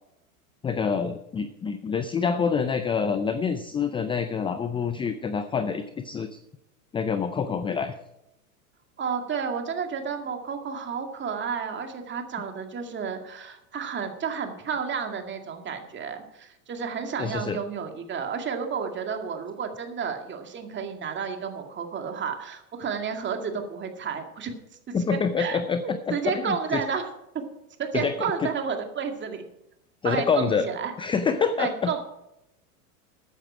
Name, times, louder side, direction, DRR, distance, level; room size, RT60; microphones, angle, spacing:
voice 1, 0.6-6.4 6.9-7.9 17.2-17.6 24.9-26.8 27.9-28.1 28.4-28.5 30.0-30.7 31.0-32.0, left 6 dB, 10° left, 10 dB, 0.5 m, -26 dB
voice 2, 9.0-24.5 24.9-25.0 25.4-27.1 27.3-27.5 27.8-29.4 30.0-30.9 31.6-32.0, right 6 dB, 25° right, 5 dB, 2.1 m, -31 dB
13.5 x 9.2 x 5.0 m, 0.85 s
hypercardioid pair, 105°, 44 cm